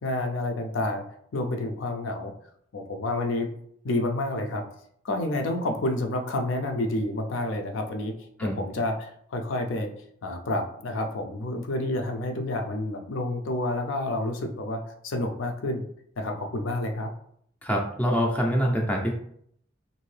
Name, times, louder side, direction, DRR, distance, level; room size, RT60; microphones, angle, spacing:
voice 1, 0.0-1.0 1.3-2.3 2.7-3.5 3.8-4.6 5.0-8.1 8.4-9.9 10.2-15.8 16.2-17.1, left 1 dB, 75° left, 4 dB, 0.5 m, -29 dB
voice 2, 17.6-19.1, equal, 5° left, -1 dB, 0.4 m, -25 dB
2.7 x 2.6 x 3.2 m, 0.67 s
head